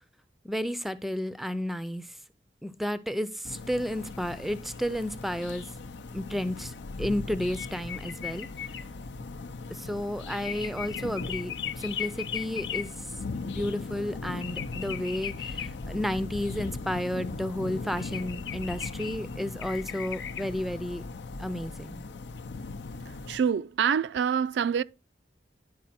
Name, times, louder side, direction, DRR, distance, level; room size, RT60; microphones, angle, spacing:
voice 1, 0.4-2.2 2.6-5.7 6.1-8.5 9.7-12.9 13.5-21.0 21.4-22.0, equal, ahead, 0.4 m, -32 dB
sound 1, 3.4-23.4, left 5 dB, 90° left, 0.6 m, -37 dB
voice 2, 23.1-24.8, right 7 dB, 80° right, 0.3 m, -26 dB
10.5 x 4.5 x 4.2 m
head